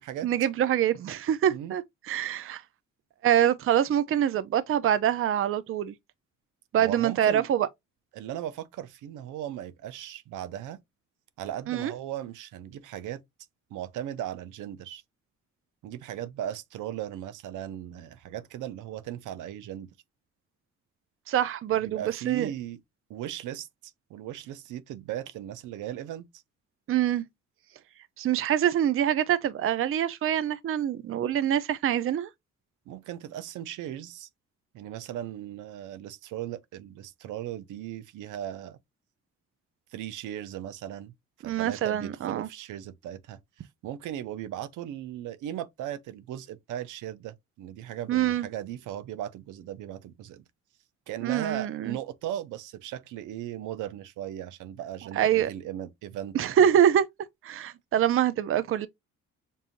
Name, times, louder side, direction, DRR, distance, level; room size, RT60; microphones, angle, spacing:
voice 1, 0.2-2.6 3.2-5.9 6.7-7.7 11.7-11.9 21.3-22.5 26.9-27.2 28.2-32.3 41.5-42.5 48.1-48.5 51.2-52.0 55.2-55.5 56.3-57.0 57.4-58.9, right 10 dB, 45° right, 0.5 m, -25 dB
voice 2, 6.8-7.5 8.1-10.8 11.4-13.2 13.7-15.0 15.8-19.9 21.8-22.8 23.1-26.3 32.9-34.3 34.7-38.8 39.9-41.1 41.4-50.4 51.1-56.5, right 11 dB, 85° right, 0.7 m, -37 dB
5.4 x 2.7 x 2.5 m
cardioid pair, 90°, 30 cm